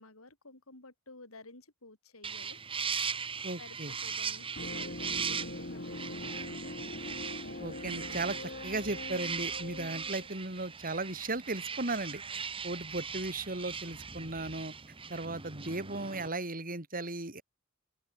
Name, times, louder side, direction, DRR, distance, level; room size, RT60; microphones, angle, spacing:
voice 1, 0.0-2.6 3.6-6.6, left 2 dB, 80° left, 5.3 m, -53 dB
sound 1, 2.2-16.3, right 6 dB, 25° right, 1.4 m, -39 dB
voice 2, 3.4-3.9 7.6-14.7 15.1-17.4, right 2 dB, 40° right, 5.0 m, -36 dB
sound 2, 4.6-10.3, left 1 dB, 50° left, 5.1 m, -42 dB
open air
head